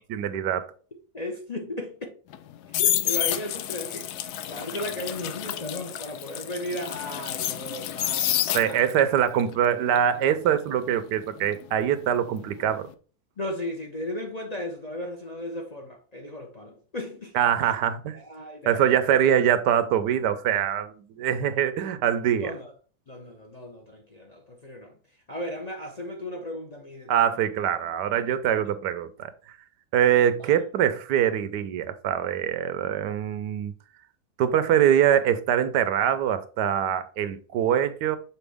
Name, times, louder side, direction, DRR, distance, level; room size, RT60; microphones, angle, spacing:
voice 1, 0.1-0.7 8.5-12.9 17.3-18.2 18.7-22.5 27.1-29.3 29.9-33.7 34.4-38.2, right 9 dB, 85° right, 1.3 m, -23 dB
voice 2, 1.1-2.1 2.8-8.9 13.4-17.3 17.6-17.7 18.1-19.0 22.4-22.7 23.1-25.0 25.3-27.4 30.4-30.5, left 1 dB, 35° left, 0.7 m, -36 dB
sound 1, 2.3-9.1 9.4-12.3 12.6-12.9, left 12 dB, 80° left, 1.1 m, -29 dB
6.9 x 4.5 x 3.4 m
omnidirectional pair, 1.7 m